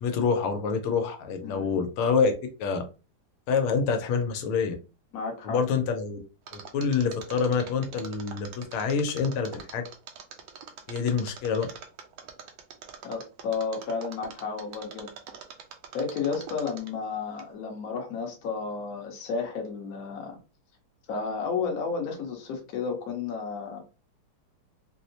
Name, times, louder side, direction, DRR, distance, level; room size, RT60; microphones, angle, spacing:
voice 1, 0.0-2.3 2.6-2.8 3.5-4.7 5.4-6.2 6.5-9.8 10.9-11.7, left 5 dB, 85° left, 6 dB, 1.5 m, -26 dB
voice 2, 1.4-1.8 5.1-5.6 13.0-15.1 15.9-20.4 21.1-23.8, left 5 dB, 55° left, 2 dB, 1.1 m, -32 dB
Mechanisms, 6.5-17.0 17.4-17.5, right 7 dB, 75° right, 1.3 m, -43 dB
4.4 x 2.0 x 2.7 m, 0.32 s
omnidirectional pair, 2.3 m